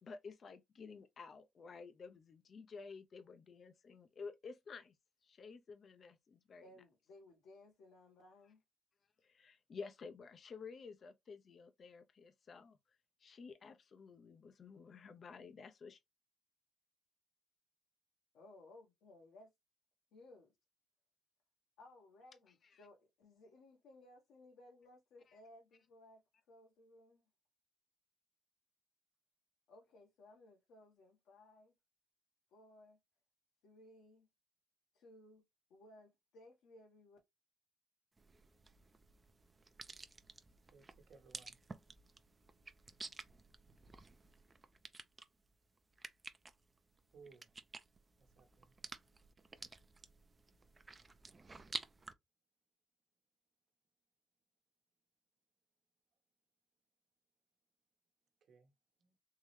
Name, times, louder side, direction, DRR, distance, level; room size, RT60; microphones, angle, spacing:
voice 1, 0.0-5.0 5.2-6.7 9.2-12.8 13.2-16.0 22.7-22.8 25.3-25.4, left 5 dB, 50° left, 0.5 m, -52 dB
voice 2, 6.6-8.6 18.3-19.5 20.1-20.5 21.8-26.2 26.5-27.3 29.7-31.7 32.5-33.0 33.6-34.3 34.9-35.4 35.7-37.2, left 2 dB, 85° left, 1.4 m, -61 dB
sound 1, 38.2-52.1, right 3 dB, 25° right, 0.5 m, -52 dB
voice 3, 41.1-41.6 47.1-47.5 48.2-48.7 58.4-58.7 59.0-59.1, right 4 dB, 65° right, 1.1 m, -62 dB
3.6 x 3.1 x 3.1 m
cardioid pair, 90°, 0 cm